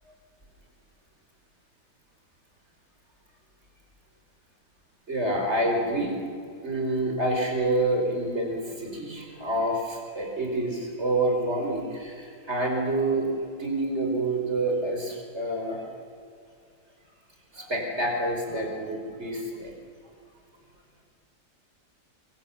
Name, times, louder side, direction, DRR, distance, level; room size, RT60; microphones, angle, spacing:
voice 1, 5.1-6.1 6.6-13.3 13.6-15.9 17.5-19.7, right 1 dB, 35° right, 1 dB, 5.2 m, -27 dB
25.0 x 24.5 x 7.4 m, 2.3 s
omnidirectional pair, 2.0 m